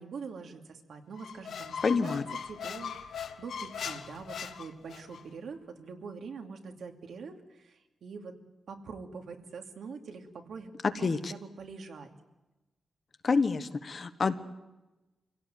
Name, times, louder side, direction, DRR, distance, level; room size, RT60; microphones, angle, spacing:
voice 1, 0.0-2.2 2.5-8.4 8.7-10.7 11.0-12.1, right 5 dB, 70° right, 4 dB, 2.6 m, -44 dB
Squeak, 1.2-5.2, left 7 dB, 75° left, 1.4 m, -40 dB
voice 2, 1.8-2.2 11.0-11.3 13.2-14.3, left 4 dB, 35° left, 10 dB, 1.1 m, -27 dB
26.0 x 17.0 x 9.3 m, 1.1 s
wide cardioid pair, 175°, 0 cm